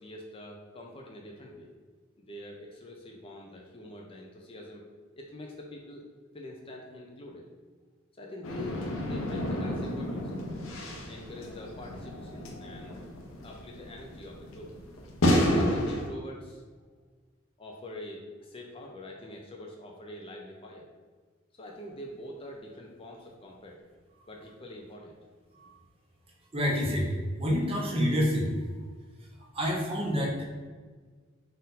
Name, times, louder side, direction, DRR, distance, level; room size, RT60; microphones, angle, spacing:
voice 1, 0.0-1.7 2.2-4.8 5.2-6.0 6.3-7.5 8.2-10.3 10.8-13.0 13.4-14.7 15.3-16.6 17.6-20.9 21.5-23.8 24.3-25.2, left 1 dB, 25° left, 0 dB, 0.4 m, -45 dB
sound 1, 8.4-16.1, left 1 dB, 80° left, 0.7 m, -31 dB
voice 2, 26.5-27.1 27.4-28.5 29.5-30.5, equal, 30° right, -2 dB, 0.8 m, -27 dB
4.1 x 2.6 x 3.9 m, 1.5 s
head